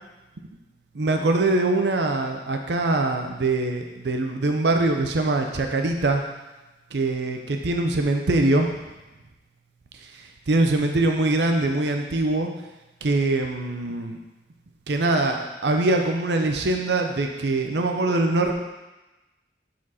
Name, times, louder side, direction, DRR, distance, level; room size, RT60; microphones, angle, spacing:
voice 1, 1.0-6.2 6.9-8.7 10.5-12.5 13.0-14.2 14.9-18.5, right 2 dB, 65° right, 4 dB, 0.6 m, -23 dB
7.5 x 4.4 x 4.1 m, 1.1 s
head